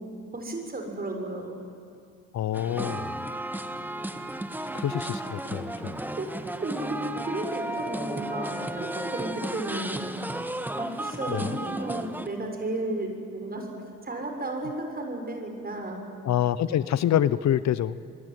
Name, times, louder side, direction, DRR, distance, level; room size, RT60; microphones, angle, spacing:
voice 1, 0.3-1.6 6.2-6.3 6.6-10.0 10.7-13.7 14.0-16.0, right 2 dB, 30° right, 3 dB, 6.7 m, -33 dB
voice 2, 2.3-3.3 4.7-6.0 11.3-11.6 16.2-18.0, left 11 dB, 65° left, 16 dB, 0.8 m, -26 dB
sound 1, 2.5-12.3, right 1 dB, 5° right, 1.5 m, -34 dB
25.5 x 23.5 x 9.4 m, 2.4 s
cardioid pair, 90°, 30 cm